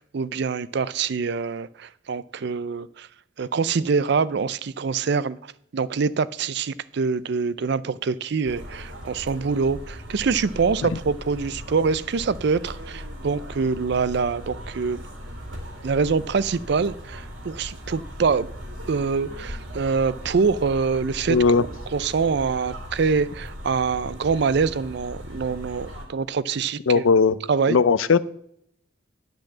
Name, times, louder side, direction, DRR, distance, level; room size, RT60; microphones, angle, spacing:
voice 1, 0.0-3.1 3.4-15.0 15.8-18.5 18.9-21.4 21.9-27.1 27.5-27.8, right 5 dB, 55° right, 0.4 m, -25 dB
sound 1, 8.4-26.0, equal, 75° right, 2.4 m, -38 dB
voice 2, 21.3-21.6 26.9-27.4 27.7-28.2, left 5 dB, 85° left, 0.5 m, -17 dB
10.5 x 5.2 x 7.3 m
head